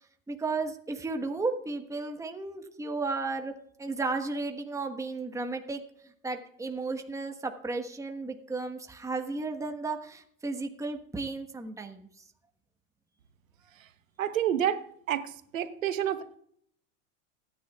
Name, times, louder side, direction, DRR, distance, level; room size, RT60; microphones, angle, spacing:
voice 1, 0.3-5.8 6.2-12.1, right 3 dB, 10° right, 4 dB, 1.2 m, -34 dB
voice 2, 14.2-14.8 15.1-16.4, right 10 dB, 85° right, 11 dB, 1.1 m, -29 dB
29.5 x 9.9 x 2.4 m, 0.67 s
hypercardioid pair, 95°, 39 cm